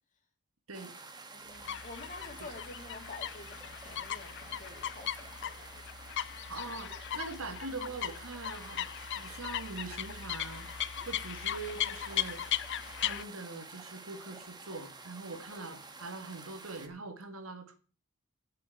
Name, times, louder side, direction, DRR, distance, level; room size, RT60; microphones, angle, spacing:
sound 1, 0.7-16.9, right 3 dB, 20° right, 1.2 m, -50 dB
voice 1, 1.3-6.1, left 3 dB, 40° left, 3 dB, 2.6 m, -49 dB
sound 2, 1.5-13.2, left 11 dB, 55° left, 0.5 m, -38 dB
voice 2, 6.5-10.7 11.1-12.4 13.0-17.8, right 3 dB, 75° right, 8 dB, 1.8 m, -43 dB
8.2 x 6.9 x 8.0 m, 0.39 s
head